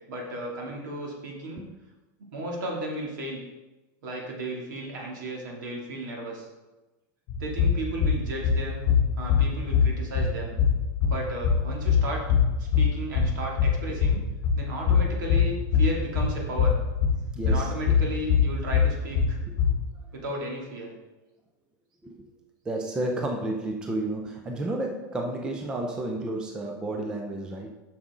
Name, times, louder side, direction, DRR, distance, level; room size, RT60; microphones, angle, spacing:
voice 1, 0.1-1.6 2.3-3.4 4.0-6.5 7.4-8.8 9.2-10.5 11.0-12.2 12.6-14.2 14.5-16.7 17.4-19.4 20.1-20.9, right 1 dB, 70° right, -1 dB, 2.6 m, -34 dB
sound 1, 7.3-19.9, left 6 dB, 25° left, 1.4 m, -24 dB
voice 2, 17.3-17.7 22.0-22.3 22.6-27.7, right 2 dB, 5° right, 3 dB, 0.4 m, -31 dB
9.0 x 6.1 x 3.7 m, 1.1 s
supercardioid pair, 175°, 11 cm